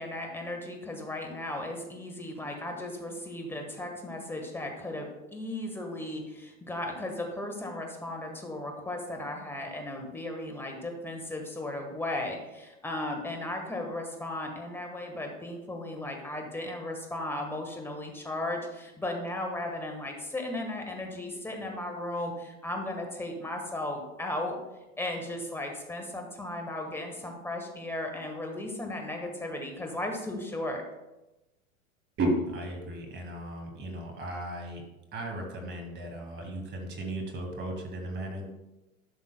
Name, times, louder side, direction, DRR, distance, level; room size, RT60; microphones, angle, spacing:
voice 1, 0.0-24.6 25.0-30.8, left 1 dB, 5° left, 2 dB, 1.4 m, -36 dB
voice 2, 32.2-34.8 35.1-38.5, right 1 dB, 25° right, 2 dB, 1.9 m, -34 dB
11.5 x 6.0 x 2.2 m, 1.0 s
hypercardioid pair, 105°, 41 cm